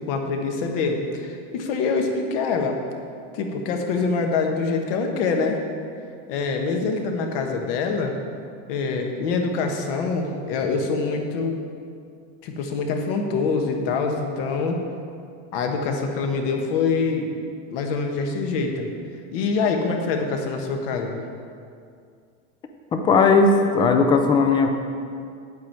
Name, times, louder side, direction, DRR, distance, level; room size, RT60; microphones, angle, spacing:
voice 1, 0.1-2.8 3.3-5.6 6.3-8.2 8.7-11.6 12.4-14.8 15.5-17.3 17.7-18.9 19.3-21.2, left 4 dB, 60° left, 3 dB, 1.3 m, -25 dB
voice 2, 22.9-24.8, left 4 dB, 15° left, 5 dB, 0.4 m, -17 dB
8.9 x 8.3 x 4.6 m, 2.3 s
supercardioid pair, 170°, 32 cm